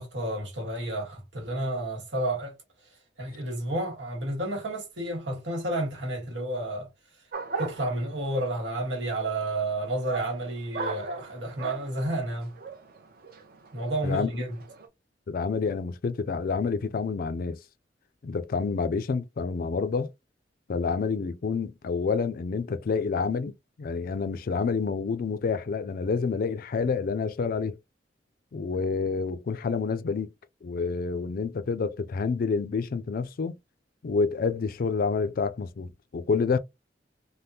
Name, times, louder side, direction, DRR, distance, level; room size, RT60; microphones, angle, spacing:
voice 1, 0.0-2.5 3.2-6.9 7.6-12.5 13.7-14.6, right 1 dB, 90° right, 1.4 m, -31 dB
sound 1, 7.3-14.9, right 4 dB, 55° right, 0.7 m, -39 dB
voice 2, 15.3-17.6 18.2-20.1 20.7-23.5 23.8-27.8 28.5-30.3 30.6-33.6 34.0-36.6, left 5 dB, 55° left, 0.4 m, -28 dB
3.5 x 2.1 x 2.8 m
head